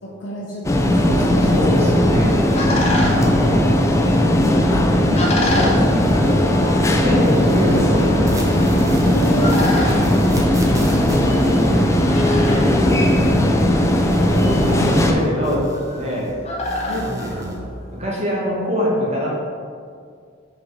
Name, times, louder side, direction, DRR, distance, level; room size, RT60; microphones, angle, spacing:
voice 1, 0.0-2.0 9.0-9.7 11.4-11.7 14.3-14.8 16.9-17.2, equal, 65° left, -4 dB, 0.8 m, -28 dB
sound 1, 0.6-15.1, left 1 dB, 15° left, 0.5 m, -17 dB
voice 2, 1.5-3.6 4.5-5.1 5.3-6.5 6.9-8.3 9.8-10.2 10.8-11.8 12.2-13.3 14.5-15.7 15.9-16.3 17.0-17.6 18.0-19.3, equal, 35° right, -4 dB, 1.3 m, -25 dB
sound 2, 2.5-18.1, left 1 dB, 35° left, 1.0 m, -31 dB
sound 3, 6.0-6.9 7.1-13.8 14.0-16.3 16.6-17.6, right 2 dB, 20° right, 0.8 m, -34 dB
5.2 x 4.3 x 4.7 m, 2.2 s
head